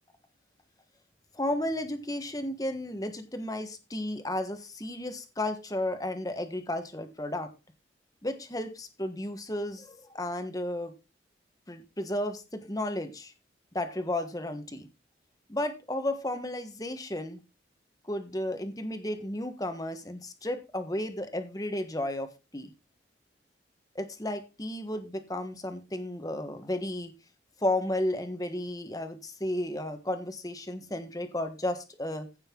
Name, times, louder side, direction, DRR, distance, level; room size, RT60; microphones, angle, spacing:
voice 1, 1.3-7.5 8.2-10.9 11.7-13.3 13.7-14.9 15.5-17.4 18.1-22.7 23.9-27.1 27.6-32.3, left 1 dB, 20° left, 7 dB, 1.4 m, -33 dB
15.5 x 6.7 x 3.8 m, 0.28 s
head